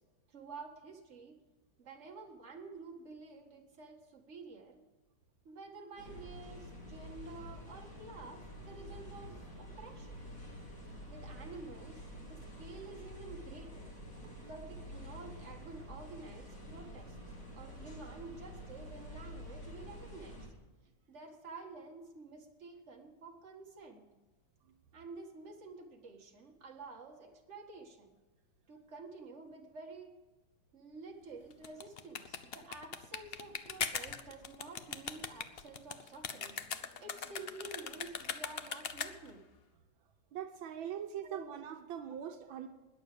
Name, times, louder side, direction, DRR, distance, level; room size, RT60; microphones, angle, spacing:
voice 1, 0.3-1.4 1.8-4.8 5.5-10.3 11.1-12.0 12.3-13.9 14.3-17.2 17.5-20.5 21.1-24.1 24.9-28.2 28.7-30.2 30.7-36.6 37.0-39.4 41.2-41.5, right 3 dB, 35° right, 1 dB, 2.1 m, -50 dB
sound 1, 6.0-20.5, equal, 45° left, 4.5 m, -48 dB
sound 2, 31.5-39.4, left 6 dB, 70° left, 0.5 m, -40 dB
voice 2, 40.3-42.7, right 9 dB, 80° right, 6 dB, 1.7 m, -42 dB
20.0 x 7.3 x 6.8 m, 1.1 s
omnidirectional pair, 2.1 m